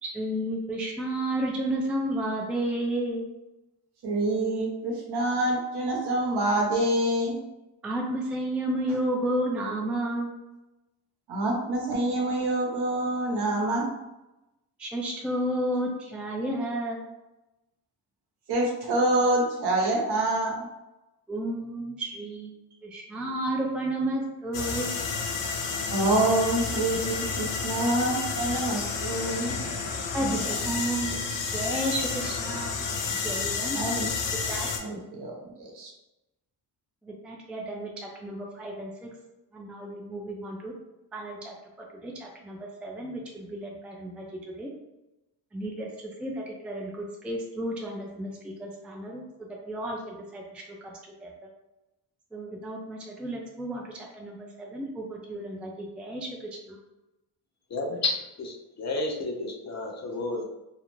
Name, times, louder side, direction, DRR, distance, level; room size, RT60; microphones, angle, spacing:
voice 1, 0.0-3.3 7.8-10.3 14.8-17.0 21.3-22.5 22.8-24.9 30.1-31.2 31.5-34.1 34.5-34.7 37.0-39.1 39.5-40.7 41.1-41.5 42.0-44.7 45.5-49.2 49.6-50.9 51.2-51.3 52.3-56.8, right 1 dB, 5° right, -1 dB, 0.4 m, -32 dB
voice 2, 4.0-7.4 11.3-13.9 18.5-20.6 25.9-29.6 30.2-30.5 31.1-31.2 33.7-34.1 34.8-35.9, right 1 dB, 65° right, -1 dB, 0.9 m, -26 dB
sound 1, 24.5-34.8, left 5 dB, 80° left, 0.6 m, -31 dB
voice 3, 57.7-60.4, left 2 dB, 40° left, 1 dB, 0.6 m, -31 dB
2.4 x 2.1 x 3.0 m, 0.97 s
cardioid pair, 80°, 42 cm